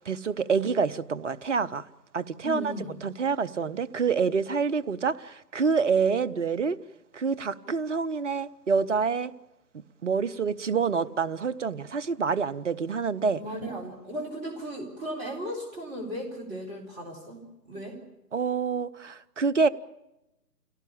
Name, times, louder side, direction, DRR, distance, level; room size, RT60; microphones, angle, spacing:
voice 1, 0.1-1.9 2.1-2.7 3.0-6.8 7.1-9.3 10.0-13.4 18.3-19.7, right 5 dB, 50° right, 15 dB, 0.8 m, -27 dB
voice 2, 2.4-2.9 13.3-17.9, right 1 dB, 15° right, -1 dB, 4.2 m, -36 dB
26.0 x 17.5 x 8.6 m, 0.94 s
figure-of-eight pair, 145°, 48 cm